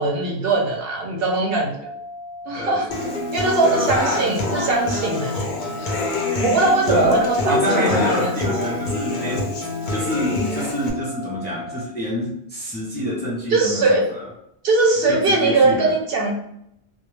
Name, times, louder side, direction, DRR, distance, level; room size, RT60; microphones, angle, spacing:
voice 1, 0.0-1.9 2.5-2.9 3.3-5.5 6.4-8.3 13.5-14.0 14.6-16.3, right 3 dB, 65° right, 0 dB, 0.8 m, -20 dB
sound 1, 1.8-11.8, left 2 dB, 35° right, 0.7 m, -37 dB
voice 2, 2.6-3.1 6.9-9.6 9.9-14.3 15.1-15.9, left 1 dB, 15° left, -5 dB, 0.5 m, -27 dB
Human voice / Acoustic guitar, 2.9-10.9, left 2 dB, 55° left, 0.6 m, -25 dB
2.2 x 2.2 x 3.1 m, 0.75 s
omnidirectional pair, 1.1 m